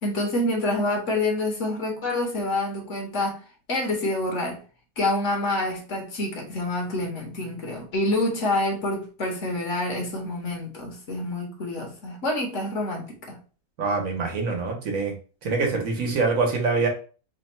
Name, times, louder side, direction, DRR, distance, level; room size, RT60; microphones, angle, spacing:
voice 1, 0.0-3.4 3.7-4.6 5.0-13.4, left 2 dB, 55° left, 1 dB, 1.3 m, -27 dB
voice 2, 13.8-15.1 15.4-16.9, right 4 dB, 65° right, 2 dB, 1.3 m, -24 dB
3.5 x 2.2 x 4.2 m, 0.38 s
omnidirectional pair, 1.6 m